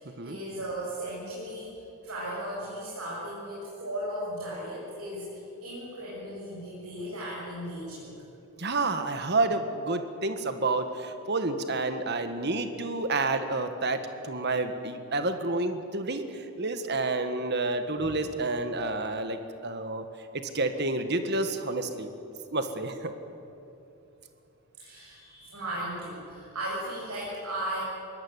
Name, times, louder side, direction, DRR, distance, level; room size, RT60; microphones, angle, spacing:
voice 1, 0.0-1.7 2.0-8.1 18.0-18.1 24.7-27.8, right 1 dB, 85° right, -7 dB, 7.6 m, -36 dB
voice 2, 8.6-20.0 20.3-22.1 22.5-23.1, right 2 dB, 50° right, 8 dB, 1.7 m, -29 dB
22.5 x 18.5 x 9.9 m, 2.8 s
head